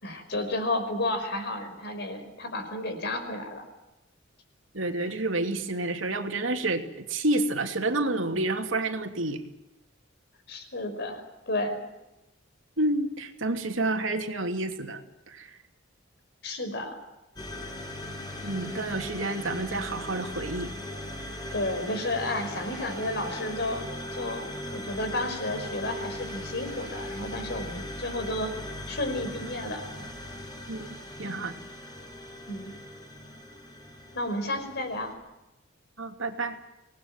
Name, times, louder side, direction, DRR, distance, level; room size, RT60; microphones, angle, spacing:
voice 1, 0.0-3.6 10.5-11.8 16.4-17.0 21.5-28.5 28.9-29.9 32.5-32.7 34.1-35.1, left 1 dB, 60° left, 7 dB, 5.4 m, -32 dB
voice 2, 4.7-9.4 12.8-15.0 15.3-15.5 18.4-20.7 30.7-30.9 31.2-31.6 36.0-36.6, right 2 dB, 80° right, 5 dB, 2.9 m, -29 dB
sound 1, 17.4-35.1, left 1 dB, 20° left, 5.8 m, -39 dB
25.5 x 19.5 x 9.1 m, 0.95 s
head